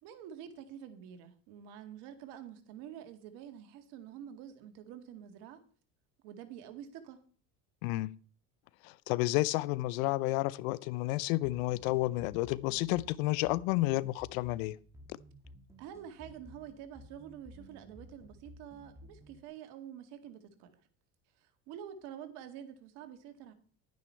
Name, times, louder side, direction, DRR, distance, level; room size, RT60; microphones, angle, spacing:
voice 1, 0.0-5.6 6.2-7.2 15.8-20.8 21.4-23.5, right 9 dB, 75° right, 2.2 m, -48 dB
voice 2, 7.8-8.2 8.8-14.8, left 19 dB, 80° left, 0.7 m, -31 dB
sound 1, 11.4-19.5, left 1 dB, 5° right, 2.3 m, -55 dB
11.5 x 9.5 x 4.6 m
supercardioid pair, 85°, 41 cm